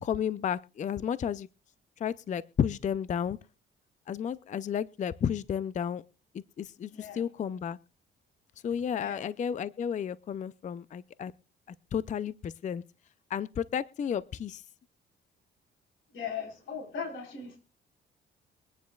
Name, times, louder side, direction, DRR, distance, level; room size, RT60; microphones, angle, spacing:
voice 1, 0.0-1.5 2.0-3.4 4.1-6.0 6.3-7.8 8.6-11.3 11.9-12.8 13.3-14.6, left 8 dB, 40° left, 17 dB, 0.4 m, -32 dB
voice 2, 6.9-7.2 9.0-9.3 16.1-17.6, left 6 dB, 80° left, 1 dB, 4.4 m, -38 dB
23.5 x 9.4 x 2.3 m, 0.34 s
cardioid pair, 90°, 20 cm